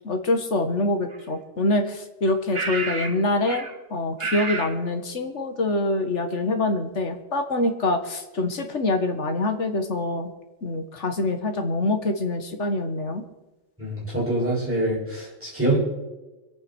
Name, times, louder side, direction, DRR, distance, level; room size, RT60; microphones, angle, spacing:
voice 1, 0.0-10.3 10.6-13.2, left 2 dB, 80° left, 5 dB, 2.0 m, -25 dB
sound 1, 1.1-1.2 2.5-3.2 3.5-3.7 4.2-4.7, right 3 dB, 55° right, 1.5 m, -29 dB
voice 2, 13.8-15.8, right 1 dB, 10° right, -7 dB, 6.8 m, -25 dB
25.5 x 8.7 x 4.6 m, 1.1 s
omnidirectional pair, 1.2 m